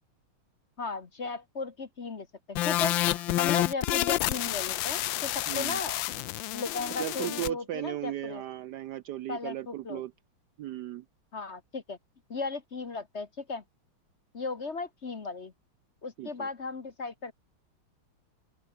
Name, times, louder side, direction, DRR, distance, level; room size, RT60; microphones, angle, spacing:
voice 1, 0.8-8.4 9.3-10.0 11.3-12.0 12.3-13.6 14.3-15.5 16.0-17.3, left 4 dB, 35° left, 1.5 m, -36 dB
sound 1, 2.6-7.5, left 15 dB, 75° left, 1.4 m, -29 dB
voice 2, 5.5-5.8 7.0-10.1 10.6-11.0 16.2-16.5, right 13 dB, 70° right, 1.0 m, -36 dB
open air
omnidirectional pair, 2.2 m